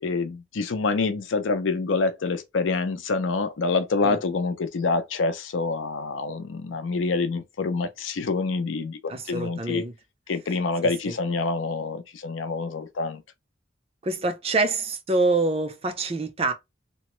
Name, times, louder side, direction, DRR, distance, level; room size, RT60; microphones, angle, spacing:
voice 1, 0.0-9.8 10.3-13.2, left 3 dB, 80° left, 0.5 m, -26 dB
voice 2, 9.1-9.9 11.1-11.2 14.0-16.5, right 3 dB, 30° right, 0.5 m, -26 dB
2.9 x 2.1 x 3.0 m
head